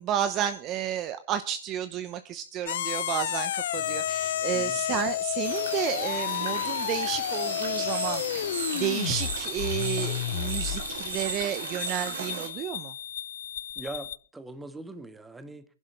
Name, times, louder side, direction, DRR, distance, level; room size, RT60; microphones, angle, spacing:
voice 1, 0.0-8.5 8.7-12.9, right 10 dB, 35° right, 11 dB, 0.9 m, -32 dB
sound 1, 2.7-14.2, left 12 dB, 75° left, 0.5 m, -31 dB
sound 2, 3.7-10.6, left 3 dB, 55° left, 3.8 m, -55 dB
voice 2, 4.5-4.8 13.8-15.6, right 2 dB, 10° right, 10 dB, 1.5 m, -41 dB
sound 3, 5.4-12.5, right 7 dB, 80° right, 3.3 m, -36 dB
22.5 x 11.0 x 3.3 m, 0.38 s
hypercardioid pair, 135°, 0 cm